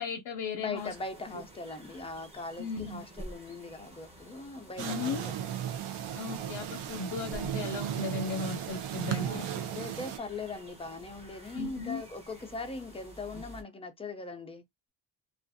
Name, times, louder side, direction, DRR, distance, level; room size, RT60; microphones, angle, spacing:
voice 1, 0.0-0.9 2.6-3.0 4.8-5.2 6.2-9.5 11.5-12.0, left 4 dB, 60° left, 0.6 m, -36 dB
voice 2, 0.6-5.5 9.2-14.9, left 3 dB, 15° left, 0.4 m, -40 dB
sound 1, 0.7-13.6, right 1 dB, 15° right, 0.8 m, -51 dB
sound 2, 4.8-10.2, right 10 dB, 85° right, 0.6 m, -35 dB
2.4 x 2.4 x 2.5 m
wide cardioid pair, 155°, 48 cm